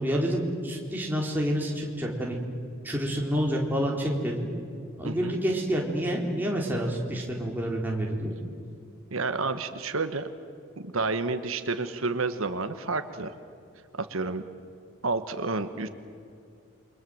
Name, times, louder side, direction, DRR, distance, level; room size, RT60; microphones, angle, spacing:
voice 1, 0.0-2.4 2.8-4.4 5.0-8.3, equal, 10° right, -2 dB, 4.0 m, -28 dB
voice 2, 5.0-5.4 9.1-10.3 10.8-13.3 14.0-14.4 15.0-15.9, right 3 dB, 80° right, 9 dB, 1.3 m, -30 dB
29.0 x 24.0 x 7.9 m, 2.5 s
head